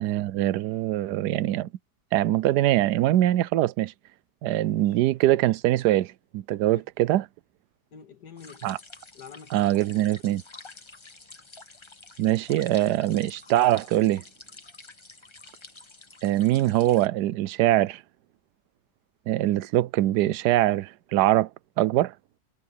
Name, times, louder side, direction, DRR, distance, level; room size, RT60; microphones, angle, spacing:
voice 1, 0.0-1.7 2.1-3.9 4.4-7.2 8.6-8.8 9.5-10.4 12.2-14.2 16.2-18.0 19.3-21.5 21.8-22.1, right 14 dB, 80° right, 1.2 m, -23 dB
voice 2, 4.7-5.0 6.5-6.8 7.9-8.8 9.1-9.7, left 7 dB, 80° left, 2.5 m, -47 dB
sound 1, 8.4-17.1, left 3 dB, 20° left, 1.0 m, -48 dB
omnidirectional pair, 1.7 m